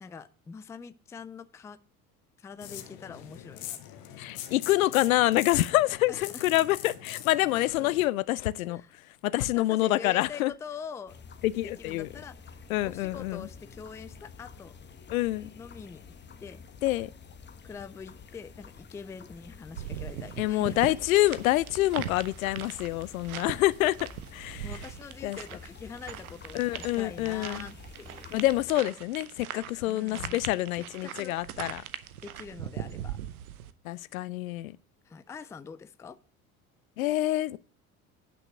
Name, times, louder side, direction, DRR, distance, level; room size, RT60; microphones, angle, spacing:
voice 1, 0.0-1.8 2.4-3.8 4.1-4.3 6.1-6.4 8.7-8.9 9.5-11.2 11.6-14.8 15.5-16.6 17.6-20.9 24.6-28.3 29.8-30.5 31.0-31.4 32.2-33.2 35.0-36.2, left 6 dB, 5° left, 0.3 m, -44 dB
sound 1, 2.6-8.1, left 11 dB, 50° left, 1.2 m, -42 dB
voice 2, 4.2-8.8 9.2-10.5 11.4-12.1 12.7-13.5 15.1-15.5 16.8-17.1 20.4-24.0 24.3-24.7 25.2-25.4 26.5-27.7 28.3-31.8 33.8-34.8 37.0-37.6, left 16 dB, 70° left, 0.5 m, -27 dB
sound 2, 11.1-28.7, left 5 dB, 25° left, 1.1 m, -49 dB
sound 3, 19.8-33.7, right 11 dB, 75° right, 0.8 m, -41 dB
9.1 x 5.9 x 6.1 m
figure-of-eight pair, 60°, 44 cm